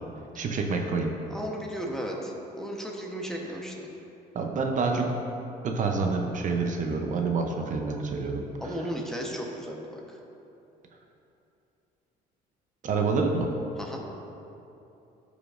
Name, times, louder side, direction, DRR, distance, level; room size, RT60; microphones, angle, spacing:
voice 1, 0.4-1.1 4.3-5.1 5.6-8.5 12.8-13.5, right 4 dB, 50° right, 2 dB, 0.7 m, -27 dB
voice 2, 1.3-3.9 8.6-10.2 13.8-14.0, equal, 5° left, -1 dB, 1.0 m, -35 dB
14.5 x 5.0 x 2.5 m, 2.9 s
cardioid pair, 110°, 17 cm